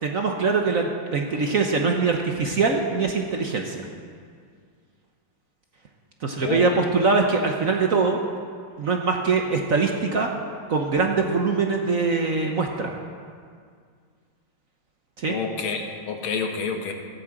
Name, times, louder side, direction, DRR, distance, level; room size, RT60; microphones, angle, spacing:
voice 1, 0.0-3.8 6.2-8.2 8.8-10.3 10.7-12.9 15.2-15.4, right 4 dB, 50° right, 2 dB, 1.2 m, -23 dB
voice 2, 15.3-16.9, left 5 dB, 75° left, 3 dB, 2.1 m, -28 dB
15.0 x 8.7 x 7.8 m, 2.1 s
omnidirectional pair, 2.3 m